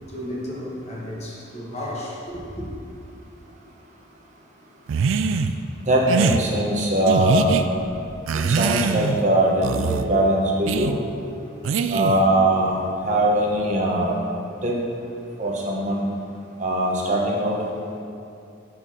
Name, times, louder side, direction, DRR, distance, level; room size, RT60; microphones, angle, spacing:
voice 1, 0.1-2.6, left 1 dB, 35° left, -4 dB, 1.4 m, -33 dB
sound 1, 4.9-5.5 6.1-6.4 7.1-7.6 8.3-9.2 9.6-10.1 10.7-10.9 11.6-12.3, right 5 dB, 70° right, 0.3 m, -23 dB
voice 2, 5.8-7.6 8.3-11.0 11.9-14.2 14.6-14.8 15.4-16.1 16.6-17.6, right 1 dB, 35° right, -2 dB, 1.0 m, -21 dB
7.7 x 4.1 x 6.2 m, 2.5 s
head